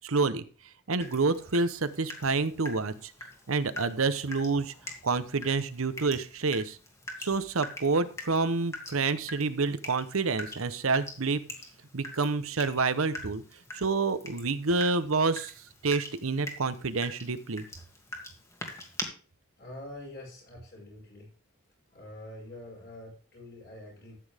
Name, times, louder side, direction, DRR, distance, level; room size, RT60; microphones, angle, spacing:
voice 1, 0.0-0.4 0.9-3.1 3.5-4.7 5.0-6.8 7.2-11.4 11.9-13.4 13.7-15.5 15.8-17.6, right 4 dB, 80° right, 13 dB, 0.9 m, -28 dB
Water tap faucet / Drip, 1.0-19.0, left 1 dB, 15° left, 2.1 m, -44 dB
voice 2, 19.6-21.3 21.9-24.2, left 1 dB, 50° left, -3 dB, 5.5 m, -45 dB
13.5 x 8.6 x 3.5 m, 0.39 s
head